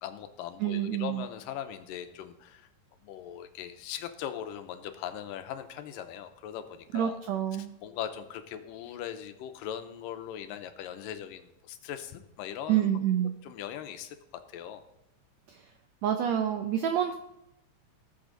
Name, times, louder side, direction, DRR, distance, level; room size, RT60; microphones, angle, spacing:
voice 1, 0.0-2.7 3.0-7.2 7.5-12.9 13.4-14.2 14.5-14.8, left 10 dB, 90° left, 9 dB, 2.4 m, -40 dB
voice 2, 0.6-1.2 6.9-7.7 12.7-13.3 15.5-15.6 16.0-17.1, right 10 dB, 80° right, 6 dB, 1.5 m, -28 dB
18.5 x 7.0 x 4.0 m, 0.84 s
omnidirectional pair, 3.9 m